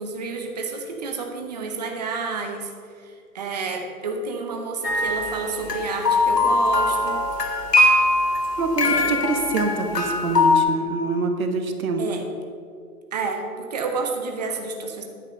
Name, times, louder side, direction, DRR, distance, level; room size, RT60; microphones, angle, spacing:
voice 1, 0.0-2.7 3.0-7.2 8.8-9.2 12.0-12.3 13.1-15.0, right 4 dB, 25° right, 3 dB, 0.8 m, -30 dB
sound 1, 4.8-10.6, left 2 dB, 90° left, 1.7 m, -21 dB
voice 2, 8.6-12.1, right 3 dB, 60° right, 5 dB, 1.3 m, -25 dB
9.6 x 6.4 x 6.5 m, 2.2 s
hypercardioid pair, 160°, 46 cm